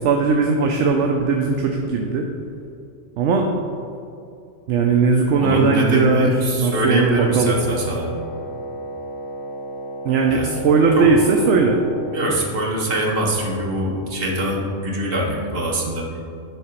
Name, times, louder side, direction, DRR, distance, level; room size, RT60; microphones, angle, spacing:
voice 1, 0.0-2.3 3.2-3.5 4.7-7.6 10.0-11.8, right 4 dB, 70° right, 2 dB, 0.9 m, -18 dB
voice 2, 5.4-8.1 10.3-10.5 11.0-11.1 12.1-16.1, right 1 dB, 45° right, -2 dB, 1.4 m, -23 dB
Wind instrument woodwind instrument, 6.9-12.3, right 1 dB, 65° left, 0.9 m, -33 dB
10.5 x 3.7 x 4.4 m, 2.6 s
omnidirectional pair, 1.4 m